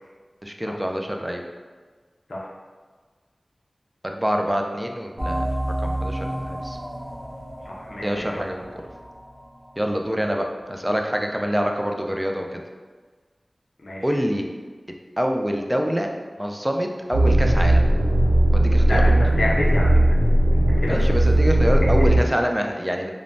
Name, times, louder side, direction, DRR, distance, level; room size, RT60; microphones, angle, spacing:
voice 1, 0.4-1.4 4.0-6.8 8.0-8.8 9.8-12.6 14.0-14.5 15.2-16.1 16.4-17.8 18.5-19.1 20.9-23.1, equal, 15° right, 3 dB, 0.3 m, -26 dB
sound 1, 5.2-10.5, right 1 dB, 40° right, 0.7 m, -31 dB
voice 2, 7.7-8.5 13.8-14.0 18.9-20.2 20.5-21.0, left 1 dB, 80° left, -4 dB, 0.4 m, -29 dB
sound 2, 17.1-22.2, right 1 dB, 80° right, 0.4 m, -17 dB
3.2 x 2.0 x 2.5 m, 1.4 s
wide cardioid pair, 50°, 0 cm